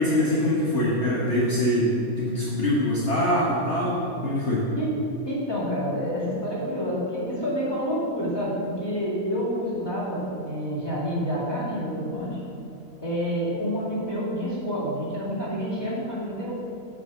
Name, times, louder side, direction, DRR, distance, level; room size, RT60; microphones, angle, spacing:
voice 1, 0.0-4.6, left 1 dB, 50° left, -6 dB, 1.5 m, -23 dB
voice 2, 5.2-12.4 13.0-16.5, equal, 15° left, -7 dB, 2.2 m, -28 dB
8.9 x 4.7 x 6.3 m, 2.7 s
omnidirectional pair, 1.6 m